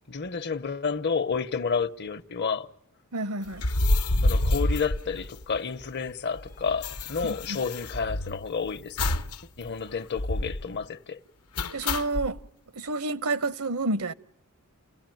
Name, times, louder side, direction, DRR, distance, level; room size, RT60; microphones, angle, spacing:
voice 1, 0.1-2.7 4.2-9.1 9.6-11.2, left 5 dB, 50° left, 0.9 m, -30 dB
voice 2, 3.1-3.7 7.2-7.6 11.7-12.4 12.7-14.1, right 2 dB, 75° right, 1.1 m, -29 dB
sound 1, 3.5-5.8 6.1-6.2 6.4-8.5 9.0-9.4 9.7-9.8 10.2-10.6 11.6-12.3, left 1 dB, 85° left, 0.9 m, -27 dB
29.5 x 17.5 x 9.2 m
head